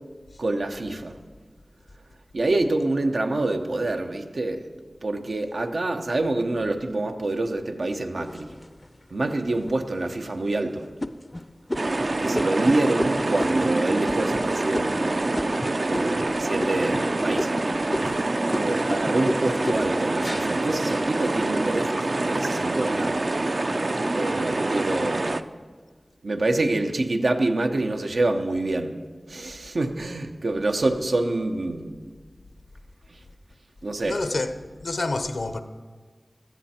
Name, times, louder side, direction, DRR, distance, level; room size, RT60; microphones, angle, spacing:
voice 1, 0.4-1.2 2.3-4.6 5.0-8.5 9.1-10.9 12.2-15.0 15.8-17.5 18.0-18.2 18.5-23.2 24.1-25.4 26.2-29.0 29.3-31.9 33.8-34.2, right 2 dB, 90° right, 0.9 m, -26 dB
sound 1, 8.2-9.0 9.6-9.7 10.2-10.5 11.0-16.3 16.6-17.1 17.4-21.7 22.2-22.7, left 1 dB, 30° left, 0.5 m, -34 dB
sound 2, 11.7-25.4, right 2 dB, 60° right, 0.5 m, -26 dB
voice 2, 34.1-34.5 34.8-35.6, left 2 dB, 85° left, 0.8 m, -27 dB
16.5 x 13.0 x 4.4 m
wide cardioid pair, 50°, 0 cm